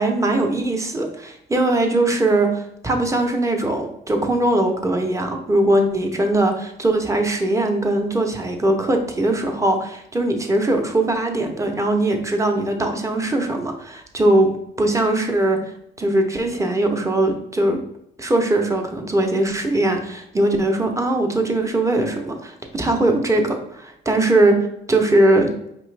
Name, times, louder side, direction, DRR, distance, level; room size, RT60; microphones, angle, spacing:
voice 1, 0.0-14.5 14.8-15.6 16.0-17.8 18.2-25.5, right 1 dB, 15° right, 3 dB, 0.8 m, -20 dB
5.0 x 3.0 x 3.2 m, 0.79 s
cardioid pair, 90°, 20 cm